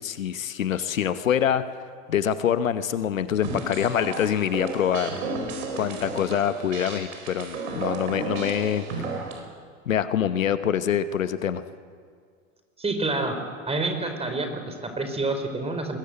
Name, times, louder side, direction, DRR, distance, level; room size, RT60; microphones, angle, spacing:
voice 1, 0.0-1.6 2.1-5.1 5.8-8.8 9.9-11.6, left 9 dB, 80° left, 12 dB, 1.1 m, -25 dB
sound 1, 3.4-9.4, right 3 dB, 70° right, 4.4 m, -33 dB
voice 2, 12.8-13.4 13.7-16.0, right 2 dB, 15° right, 6 dB, 4.6 m, -28 dB
21.5 x 21.5 x 8.0 m, 2.1 s
figure-of-eight pair, 80°, 39 cm